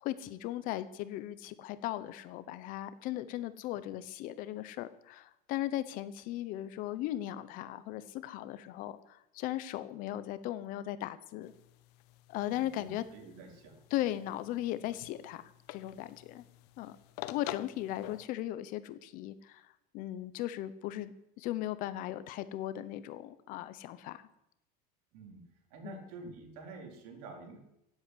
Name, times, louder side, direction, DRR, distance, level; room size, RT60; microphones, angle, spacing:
voice 1, 0.0-11.5 12.3-13.0 13.9-16.4 16.8-17.0 17.3-24.2 25.8-26.0, left 14 dB, 40° left, 14 dB, 1.0 m, -37 dB
sound 1, 11.4-18.3, left 15 dB, 75° left, 0.9 m, -48 dB
voice 2, 12.4-13.8 25.1-25.4 25.7-27.6, right 3 dB, 65° right, 4 dB, 4.1 m, -48 dB
16.0 x 8.4 x 9.9 m, 0.83 s
cardioid pair, 165°, 21 cm